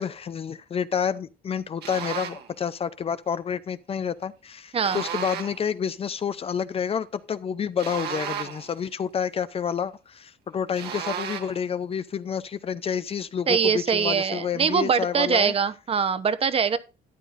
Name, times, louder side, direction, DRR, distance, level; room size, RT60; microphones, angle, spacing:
voice 1, 0.0-15.5, left 7 dB, 35° left, 0.6 m, -29 dB
sound 1, 1.8-2.5 4.8-5.7 7.8-8.8 10.8-11.6, right 8 dB, 70° right, 1.7 m, -33 dB
voice 2, 13.5-16.8, right 6 dB, 35° right, 0.9 m, -23 dB
13.0 x 9.2 x 2.6 m
cardioid pair, 110°, 17 cm